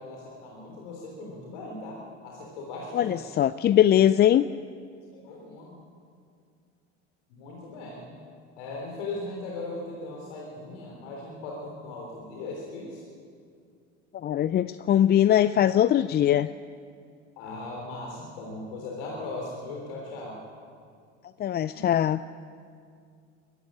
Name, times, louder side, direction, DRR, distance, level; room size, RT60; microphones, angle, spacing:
voice 1, 0.0-3.3 5.2-5.8 7.3-8.1 8.6-13.0 17.4-20.4, left 2 dB, 70° left, -2 dB, 3.7 m, -38 dB
voice 2, 2.9-4.4 14.2-16.5 21.4-22.2, left 11 dB, 30° left, 15 dB, 0.4 m, -21 dB
22.0 x 14.0 x 8.6 m, 2.3 s
hypercardioid pair, 70°, 35 cm